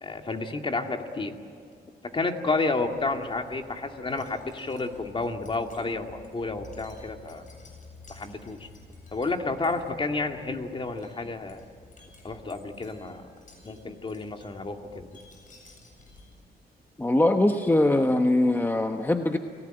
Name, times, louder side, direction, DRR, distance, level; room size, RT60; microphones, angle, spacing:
voice 1, 0.0-1.3 2.1-7.5 8.1-8.7 9.1-11.6 12.2-13.3 13.6-15.1, left 3 dB, 30° left, 4 dB, 2.2 m, -31 dB
Wind chime, 2.9-16.6, left 2 dB, 50° left, 7.9 m, -52 dB
voice 2, 17.0-19.4, left 1 dB, 10° left, 5 dB, 1.2 m, -22 dB
30.0 x 19.0 x 9.1 m, 2.4 s
cardioid pair, 120°, 17 cm